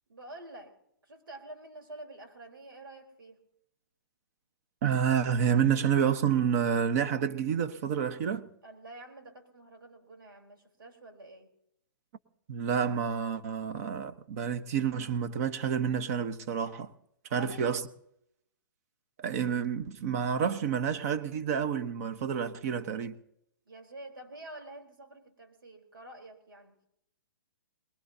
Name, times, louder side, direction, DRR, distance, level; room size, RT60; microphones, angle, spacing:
voice 1, 0.1-3.4 8.6-11.5 17.3-17.7 23.7-26.8, right 1 dB, 90° right, 4.1 m, -48 dB
voice 2, 4.8-8.5 12.5-16.9 17.3-17.8 19.2-23.2, right 8 dB, 45° right, 1.2 m, -29 dB
23.0 x 20.5 x 2.8 m
hypercardioid pair, 145°, 11 cm